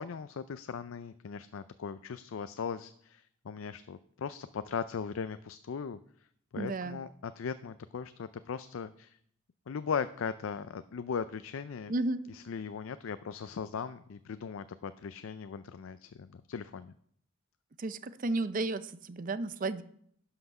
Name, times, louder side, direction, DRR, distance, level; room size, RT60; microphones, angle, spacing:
voice 1, 0.0-6.0 6.5-9.2 9.7-11.9 12.3-16.9, left 6 dB, 75° left, 13 dB, 0.4 m, -38 dB
voice 2, 6.6-7.0 11.9-12.2 17.8-19.8, right 2 dB, 40° right, 13 dB, 0.5 m, -33 dB
11.5 x 5.8 x 5.4 m, 0.65 s
head